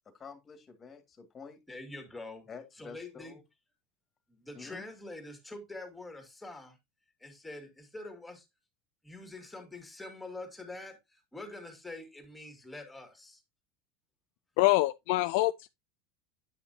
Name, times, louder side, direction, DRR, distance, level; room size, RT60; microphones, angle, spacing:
voice 1, 0.2-1.6 2.5-3.4 4.6-4.8, left 5 dB, 25° left, 2.0 m, -48 dB
voice 2, 1.7-2.5 2.7-3.4 4.3-6.8 7.2-8.5 9.0-13.4, left 2 dB, 10° left, 2.4 m, -45 dB
voice 3, 14.6-15.7, left 18 dB, 70° left, 0.3 m, -25 dB
9.7 x 5.9 x 2.7 m
supercardioid pair, 115°, 0 cm